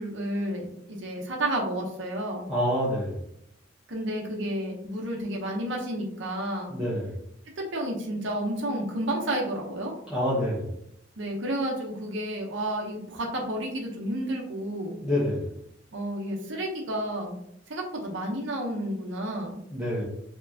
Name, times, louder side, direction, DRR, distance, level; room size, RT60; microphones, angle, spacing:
voice 1, 0.0-2.5 3.9-6.7 7.6-9.9 11.2-15.0 15.9-17.3 17.7-19.6, right 1 dB, 70° right, 0 dB, 0.8 m, -31 dB
voice 2, 2.5-3.2 6.7-7.2 10.1-10.7 15.0-15.5 19.7-20.0, left 1 dB, 5° right, -10 dB, 1.0 m, -27 dB
4.4 x 2.9 x 2.7 m, 0.76 s
head